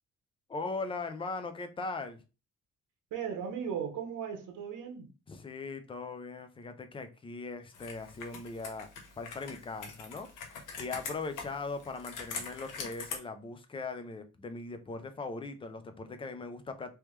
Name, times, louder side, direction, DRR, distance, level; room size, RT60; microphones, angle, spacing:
voice 1, 0.5-2.2 5.3-8.9 9.2-16.9, left 3 dB, 15° left, 0.4 m, -40 dB
voice 2, 3.1-5.1, right 7 dB, 75° right, 1.0 m, -37 dB
Computer keyboard, 7.7-13.2, left 5 dB, 75° left, 1.1 m, -43 dB
3.4 x 3.0 x 3.1 m
cardioid pair, 160°, 32 cm